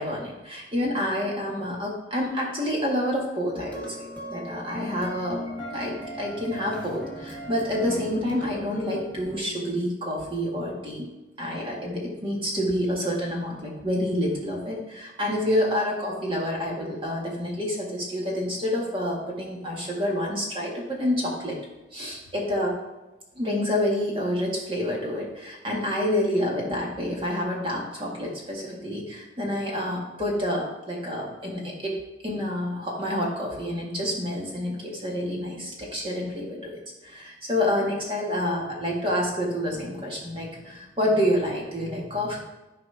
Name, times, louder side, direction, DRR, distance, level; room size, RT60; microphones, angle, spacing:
voice 1, 0.0-11.1 11.4-21.6 21.9-22.8 23.4-31.9 32.2-36.7 37.0-42.4, left 1 dB, 30° right, -2 dB, 1.9 m, -28 dB
sound 1, 3.5-9.4, right 1 dB, 10° left, 1.4 m, -37 dB
13.0 x 4.8 x 3.5 m, 1.0 s
head